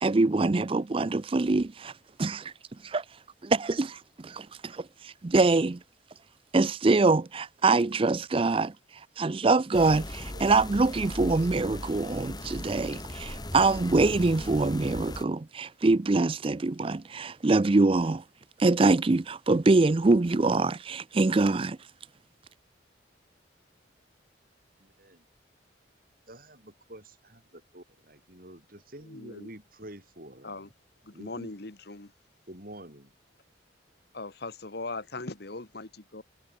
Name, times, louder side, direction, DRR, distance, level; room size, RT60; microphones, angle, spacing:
voice 1, 0.0-1.9 2.2-2.5 2.8-3.0 3.4-5.8 6.5-8.7 9.2-10.0 10.4-18.2 18.6-21.8, right 3 dB, 30° right, 0.4 m, -24 dB
sound 1, 9.7-15.2, left 1 dB, 20° left, 2.6 m, -38 dB
voice 2, 24.8-25.3 26.3-30.7 31.1-31.5 32.5-33.1, right 1 dB, 45° right, 7.0 m, -48 dB
voice 3, 29.1-29.5 30.4-30.7 31.1-32.1 34.1-36.2, left 3 dB, 55° left, 1.5 m, -39 dB
head